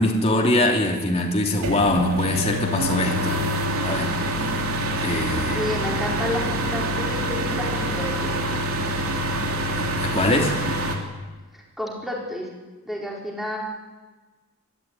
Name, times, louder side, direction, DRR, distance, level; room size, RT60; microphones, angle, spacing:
voice 1, 0.0-3.4 3.8-4.1 5.0-5.6 9.8-10.6, left 1 dB, 30° left, 0 dB, 3.0 m, -22 dB
sound 1, 1.6-11.0, right 1 dB, 80° right, 3.2 m, -26 dB
voice 2, 4.2-4.7 5.5-8.4 11.5-12.5 12.8-13.6, left 1 dB, ahead, -3 dB, 4.7 m, -31 dB
23.5 x 14.0 x 9.6 m, 1.3 s
head